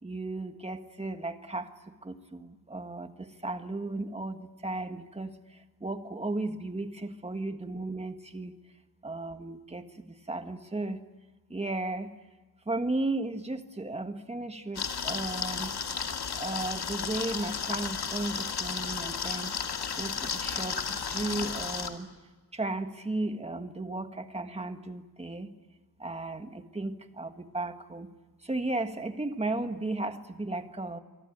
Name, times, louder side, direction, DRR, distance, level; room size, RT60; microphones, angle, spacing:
voice 1, 0.0-8.5 9.0-11.0 11.5-12.1 12.6-15.7 16.3-19.5 19.9-22.1 22.5-25.5 26.0-28.1 28.4-31.0, right 2 dB, 15° right, 7 dB, 1.6 m, -35 dB
sound 1, 14.7-21.9, left 6 dB, 75° left, 2.6 m, -33 dB
27.5 x 24.0 x 8.8 m, 1.2 s
wide cardioid pair, 175°, 39 cm